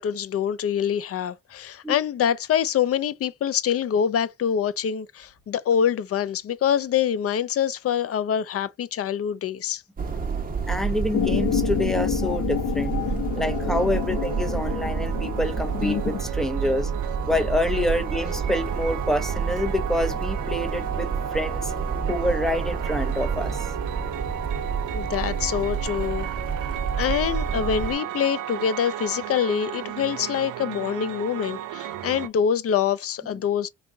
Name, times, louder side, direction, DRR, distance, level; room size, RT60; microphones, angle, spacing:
voice 1, 0.0-9.8 24.9-26.3 27.0-33.7, left 8 dB, 50° left, 0.6 m, -25 dB
sound 1, 10.0-27.9, right 6 dB, 30° right, 1.1 m, -29 dB
voice 2, 10.7-13.0 13.4-16.9 17.3-21.7 22.1-23.7, left 1 dB, ahead, 0.8 m, -27 dB
sound 2, 11.1-16.2, left 9 dB, 80° left, 0.9 m, -28 dB
sound 3, 12.9-32.3, right 10 dB, 90° right, 0.6 m, -34 dB
3.8 x 2.4 x 3.8 m
cardioid pair, 90°, 30 cm